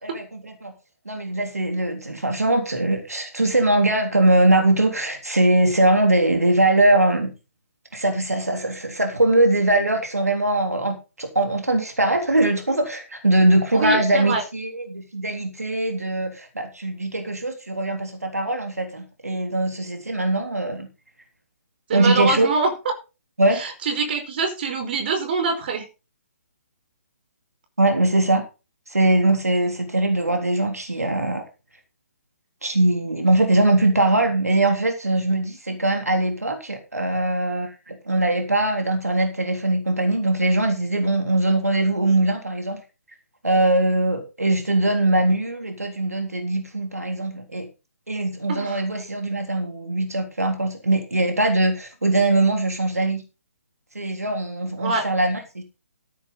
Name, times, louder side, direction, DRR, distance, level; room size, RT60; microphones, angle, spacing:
voice 1, 0.0-0.7 1.1-7.3 7.9-20.9 21.9-22.5 23.4-23.6 27.8-28.4 28.9-31.4 32.6-42.8 43.4-47.7 48.1-53.2 54.0-55.6, right 2 dB, 75° right, 4 dB, 3.5 m, -21 dB
voice 2, 13.7-14.4 21.9-22.7 23.5-25.8 48.5-48.8 54.8-55.0, right 4 dB, 40° right, 6 dB, 4.8 m, -24 dB
14.0 x 10.0 x 3.9 m, 0.30 s
figure-of-eight pair, 135°, 8 cm